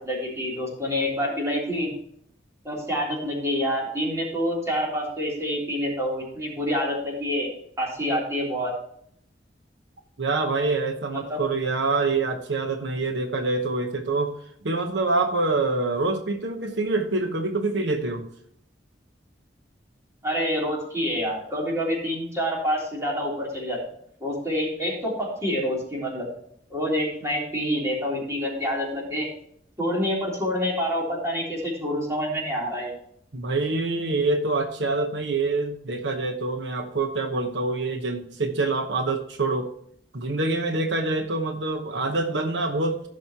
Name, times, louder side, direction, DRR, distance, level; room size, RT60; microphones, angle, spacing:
voice 1, 0.0-1.9 2.6-7.5 7.8-8.7 11.3-11.4 20.2-23.8 24.2-26.3 26.7-29.3 29.8-32.9, equal, 15° right, -3 dB, 3.3 m, -27 dB
voice 2, 10.2-14.4 14.6-18.2 33.3-39.7 40.1-43.0, right 3 dB, 85° right, 5 dB, 1.0 m, -26 dB
15.5 x 6.4 x 2.9 m, 0.67 s
head